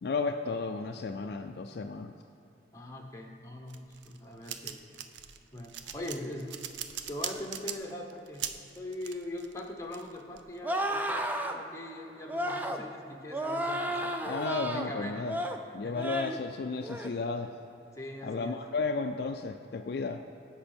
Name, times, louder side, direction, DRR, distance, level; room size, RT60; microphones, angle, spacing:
voice 1, 0.0-2.1 14.3-15.4 15.7-17.5 18.2-20.2, left 4 dB, 55° left, 6 dB, 0.3 m, -33 dB
voice 2, 2.7-4.8 5.5-6.5 7.1-8.5 8.8-14.2 14.6-15.3 15.8-16.2 17.9-18.6, left 1 dB, 15° left, 0 dB, 1.0 m, -41 dB
sound 1, 3.7-10.8, right 9 dB, 75° right, 0.5 m, -40 dB
sound 2, 10.6-11.6 12.3-12.8 13.3-14.9 15.2-15.6 16.0-16.4 16.8-17.1, right 1 dB, 10° right, 0.4 m, -32 dB
16.0 x 5.5 x 4.4 m, 2.9 s
head